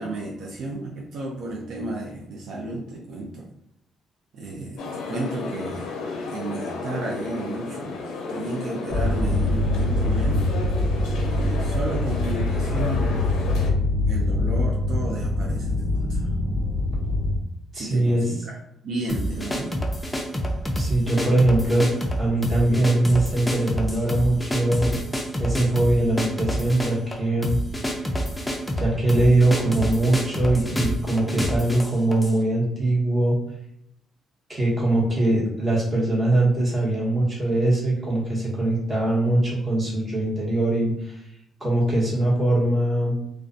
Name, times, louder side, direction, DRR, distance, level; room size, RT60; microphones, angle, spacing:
voice 1, 0.0-3.5 4.3-5.9 6.3-8.0 8.3-10.5 11.2-13.2 14.1-16.3 17.7-18.6 18.8-19.8 28.0-28.1, right 2 dB, 70° right, -2 dB, 0.4 m, -32 dB
sound 1, 4.8-13.7, left 3 dB, 85° left, 0.4 m, -33 dB
sound 2, 8.9-17.4, left 2 dB, 90° right, 1.0 m, -24 dB
voice 2, 17.7-18.3 20.7-25.0 25.4-27.5 28.8-33.4 34.5-41.2 41.6-43.1, right 1 dB, 30° right, -6 dB, 1.1 m, -22 dB
sound 3, 19.1-32.4, equal, 10° left, 0.4 m, -28 dB
2.3 x 2.2 x 2.5 m, 0.78 s
cardioid pair, 90°, 0 cm